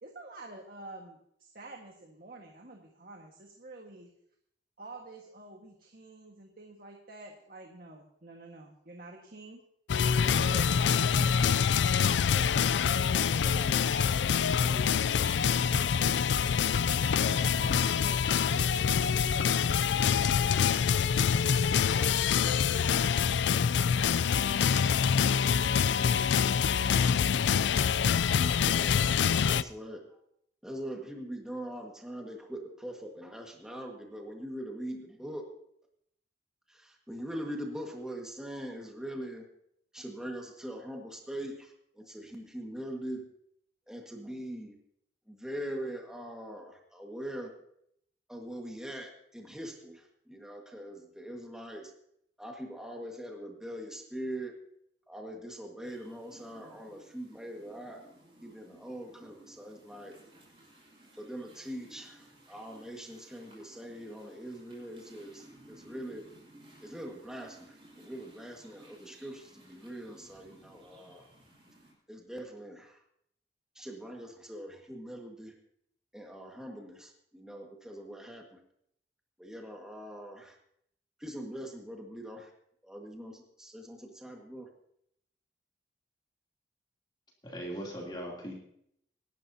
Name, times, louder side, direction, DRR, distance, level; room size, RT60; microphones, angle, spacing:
voice 1, 0.0-4.1 4.8-9.6 10.2-12.6 13.0-13.7 14.2-16.5 16.8-19.5 20.2-22.7, right 2 dB, 55° right, 1 dB, 1.6 m, -47 dB
sound 1, 9.9-29.6, left 7 dB, 80° left, 0.4 m, -26 dB
voice 2, 27.6-28.1 28.5-30.0 30.6-35.5 36.7-39.4 39.9-43.2 43.9-44.7 45.3-47.5 48.3-51.9 52.4-54.5 55.1-58.0 58.4-60.1 61.2-66.3 66.8-71.3 72.1-73.0 73.7-75.5 76.1-78.5 79.4-80.5 81.2-82.5 82.8-84.7, right 1 dB, 5° right, 0 dB, 1.7 m, -42 dB
Forest Wanderings, 55.8-71.9, right 1 dB, 30° right, 6.0 m, -57 dB
voice 3, 87.4-88.5, equal, 25° left, -2 dB, 3.0 m, -39 dB
25.0 x 12.0 x 2.8 m, 0.71 s
head